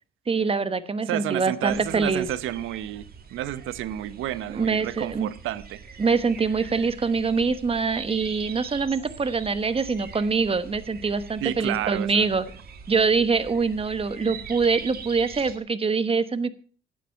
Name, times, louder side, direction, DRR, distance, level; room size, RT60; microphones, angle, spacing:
voice 1, 0.3-2.3 4.5-5.3 6.0-12.4 12.9-16.5, right 4 dB, 30° right, 1.1 m, -24 dB
voice 2, 1.1-3.0 3.3-5.8 11.4-12.3, right 13 dB, 85° right, 0.8 m, -30 dB
sound 1, 1.6-15.6, right 6 dB, 50° right, 2.0 m, -43 dB
12.0 x 9.3 x 5.6 m
cardioid pair, 90°, 20 cm